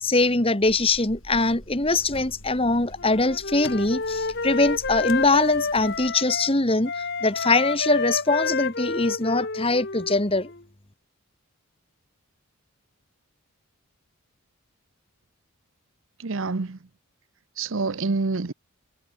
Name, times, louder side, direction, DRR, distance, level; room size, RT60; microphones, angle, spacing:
voice 1, 0.0-10.5, left 2 dB, 25° left, 1.7 m, -22 dB
sound 1, 0.6-6.2, left 1 dB, 65° left, 6.7 m, -45 dB
Wind instrument woodwind instrument, 3.0-6.5 6.8-10.6, left 4 dB, 50° left, 1.6 m, -29 dB
voice 2, 16.2-16.8 17.6-18.5, right 3 dB, 60° right, 0.7 m, -27 dB
head